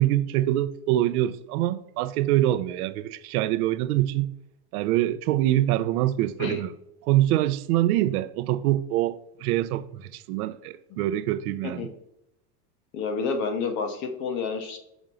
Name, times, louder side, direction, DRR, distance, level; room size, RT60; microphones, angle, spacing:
voice 1, 0.0-4.3 4.7-6.7 7.0-11.9, right 14 dB, 75° right, 0.6 m, -24 dB
voice 2, 12.9-14.8, left 5 dB, 25° left, 0.5 m, -29 dB
6.1 x 3.8 x 5.4 m
supercardioid pair, 170°, 45 cm